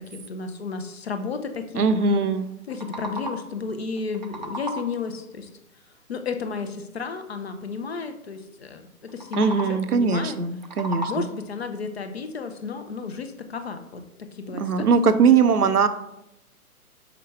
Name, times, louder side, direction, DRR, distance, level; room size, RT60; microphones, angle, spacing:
voice 1, 0.0-2.3 2.7-5.5 6.1-10.4 11.1-15.3, left 5 dB, 45° left, 8 dB, 0.6 m, -33 dB
voice 2, 1.7-2.5 9.4-11.3 14.6-15.9, right 6 dB, 80° right, 11 dB, 0.6 m, -20 dB
sound 1, 2.5-3.6 4.0-5.1 9.1-10.0 10.4-11.5, right 1 dB, 35° right, 0.4 m, -35 dB
5.8 x 4.9 x 3.2 m, 0.87 s
figure-of-eight pair, 130°, 44 cm